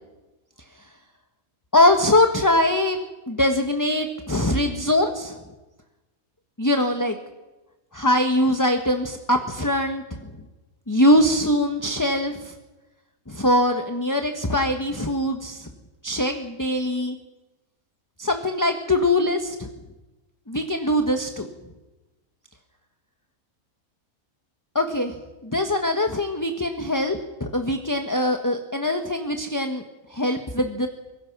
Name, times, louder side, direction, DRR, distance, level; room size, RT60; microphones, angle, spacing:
voice 1, 1.7-3.0 3.3-5.3 6.6-7.2 7.9-10.3 10.9-12.5 13.3-15.7 16.0-17.2 18.2-19.7 20.5-21.5 24.7-25.2 25.4-29.8 30.1-30.9, left 1 dB, 15° left, 5 dB, 1.3 m, -22 dB
24.5 x 22.5 x 6.1 m, 1.1 s
omnidirectional pair, 1.5 m